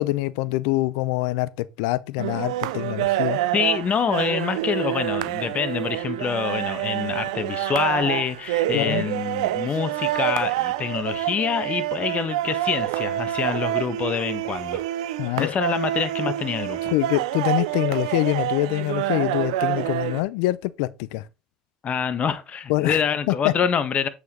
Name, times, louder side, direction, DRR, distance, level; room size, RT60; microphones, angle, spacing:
voice 1, 0.0-3.4 8.7-9.1 15.2-15.6 16.9-21.3 22.7-23.5, left 18 dB, 75° left, 0.5 m, -25 dB
sound 1, 2.2-20.2, right 14 dB, 80° right, 0.5 m, -27 dB
voice 2, 3.5-14.8 15.3-16.9 21.8-24.1, left 7 dB, 40° left, 1.4 m, -26 dB
8.3 x 5.0 x 3.8 m
hypercardioid pair, 70°, 3 cm